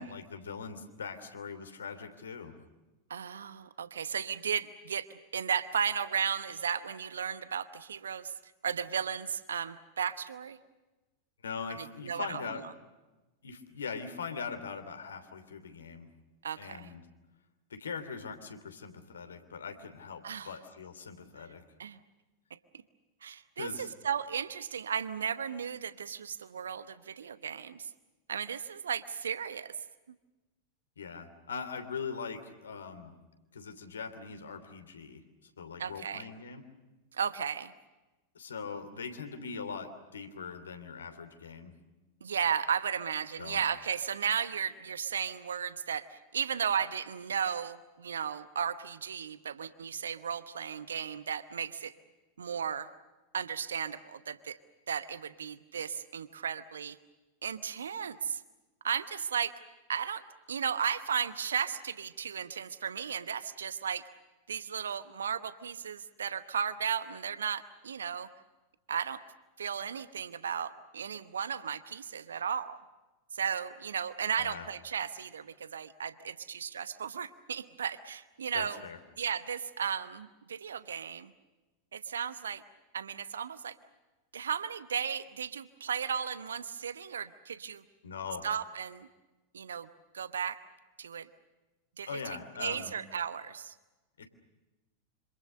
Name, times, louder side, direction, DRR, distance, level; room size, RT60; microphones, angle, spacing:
voice 1, 0.0-2.6 11.4-12.6 13.4-16.1 16.5-17.1 17.7-21.6 23.6-23.9 31.0-33.1 33.5-36.6 38.3-41.7 43.4-43.6 74.4-74.7 78.5-79.0 88.0-88.5 92.1-92.9 94.2-94.3, left 5 dB, 70° left, 8 dB, 3.1 m, -41 dB
voice 2, 3.1-8.3 8.6-10.6 12.0-12.4 16.4-16.9 20.2-20.5 21.8-22.0 23.2-27.9 28.3-29.7 35.8-36.3 37.2-37.7 42.2-51.9 52.4-52.9 53.3-54.5 54.9-57.0 57.4-58.4 58.8-59.5 59.9-64.1 64.5-68.3 68.9-69.2 69.6-72.8 73.3-78.8 79.2-81.3 81.9-82.6 82.9-83.7 84.3-87.8 88.4-89.1 89.5-89.9 90.1-90.6 91.0-91.3 92.0-92.1 92.6-93.7, right 7 dB, 70° right, 14 dB, 1.0 m, -35 dB
27.5 x 26.5 x 6.5 m, 1.1 s
figure-of-eight pair, 90°, 0 cm